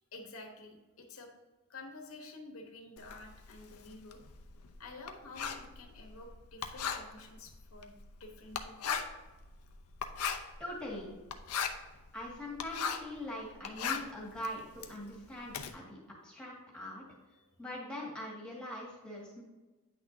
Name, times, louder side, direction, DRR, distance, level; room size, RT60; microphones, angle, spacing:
voice 1, 0.1-1.3 1.7-4.2 4.8-9.0 17.4-17.5, left 2 dB, 70° left, 2 dB, 1.1 m, -50 dB
Writing, 3.0-13.2 13.5-15.7, left 7 dB, 85° left, 0.7 m, -38 dB
voice 2, 10.6-11.1 12.1-17.0 17.6-19.4, left 1 dB, 5° left, -5 dB, 2.0 m, -42 dB
9.1 x 6.1 x 2.7 m, 1.2 s
head